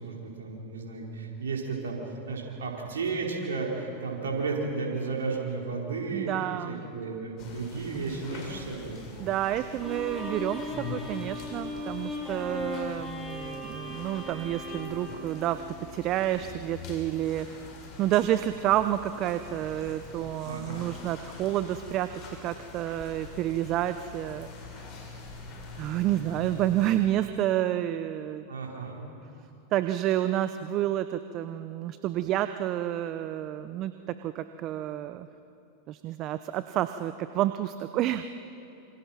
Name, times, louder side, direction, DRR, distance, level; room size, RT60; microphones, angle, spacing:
voice 1, 0.0-2.0 2.3-6.3 6.7-9.0 20.4-20.9 28.5-29.0, right 4 dB, 80° right, -1 dB, 4.8 m, -33 dB
voice 2, 6.1-6.8 9.2-15.6 15.9-17.5 18.0-24.5 24.7-24.9 25.8-28.5 29.7-35.3 35.9-38.2, right 13 dB, 45° right, 11 dB, 0.9 m, -29 dB
sound 1, 7.4-27.0, left 4 dB, 45° left, 7.8 m, -45 dB
Bowed string instrument, 9.8-16.1, left 2 dB, 10° left, 8.0 m, -38 dB
27.5 x 26.5 x 5.9 m, 2.8 s
hypercardioid pair, 95°, 0 cm